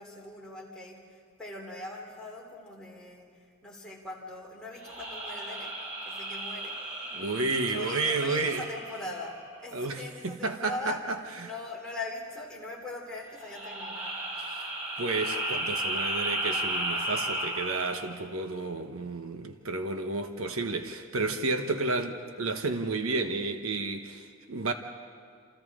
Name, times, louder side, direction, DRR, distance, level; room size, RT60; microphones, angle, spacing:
voice 1, 0.0-5.7 6.0-6.8 7.1-11.0 11.4-14.2, left 2 dB, 5° left, -3 dB, 3.4 m, -41 dB
sound 1, 4.8-9.6 13.4-18.1, right 1 dB, 30° right, 3.8 m, -34 dB
voice 2, 7.1-8.6 9.7-11.5 14.4-14.7 15.0-24.7, right 3 dB, 70° right, 6 dB, 1.1 m, -31 dB
28.0 x 28.0 x 3.8 m, 2.1 s
head